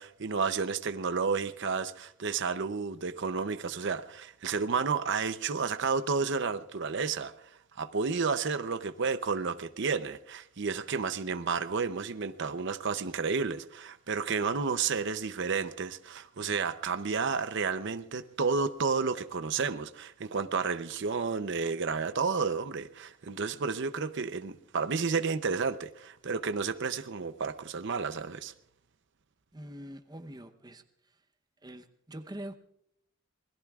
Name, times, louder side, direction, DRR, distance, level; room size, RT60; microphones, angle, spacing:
voice 1, 0.0-7.3 7.8-28.5, right 5 dB, 60° right, 0.7 m, -31 dB
voice 2, 29.5-31.2 31.6-32.6, right 1 dB, 20° right, 0.8 m, -44 dB
27.5 x 21.0 x 2.4 m
head